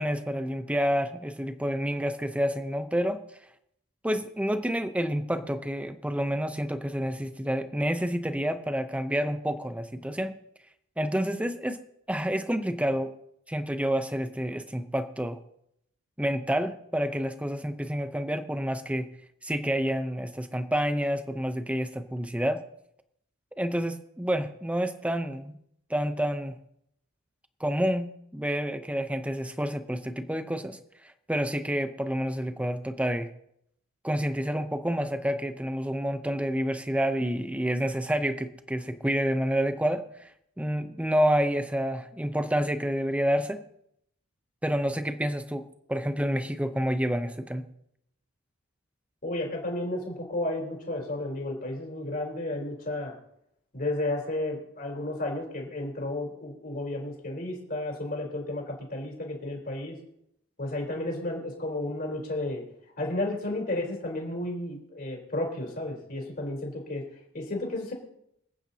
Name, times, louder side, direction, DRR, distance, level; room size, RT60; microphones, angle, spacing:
voice 1, 0.0-3.2 4.0-10.4 11.0-11.8 12.1-13.1 13.5-15.4 16.2-19.1 19.4-22.6 23.6-25.5 25.9-26.6 27.6-30.8 31.0-33.3 34.0-40.3 40.6-43.7 44.6-47.7, equal, 5° right, 9 dB, 0.7 m, -29 dB
voice 2, 49.2-53.2 53.7-60.0 60.6-62.6 63.0-67.0 67.3-67.9, left 1 dB, 45° left, -1 dB, 3.8 m, -32 dB
26.5 x 9.1 x 2.8 m, 0.75 s
head